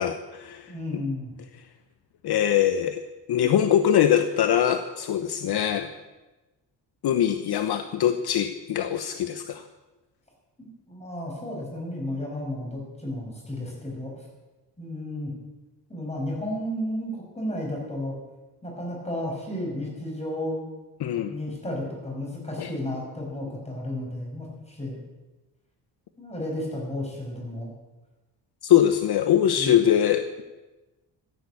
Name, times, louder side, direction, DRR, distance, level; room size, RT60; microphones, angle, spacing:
voice 1, 0.0-1.0 2.2-3.0 3.3-5.9 7.0-9.6 21.0-21.3 22.6-22.7 28.6-30.2, left 10 dB, 60° left, 8 dB, 1.0 m, -22 dB
voice 2, 0.7-1.3 10.6-14.2 14.8-15.3 15.9-18.1 18.6-20.6 21.3-25.0 26.2-27.7 29.6-29.8, left 1 dB, 15° left, -1 dB, 6.5 m, -33 dB
15.0 x 11.0 x 8.5 m, 1.1 s
cardioid pair, 135°, 43 cm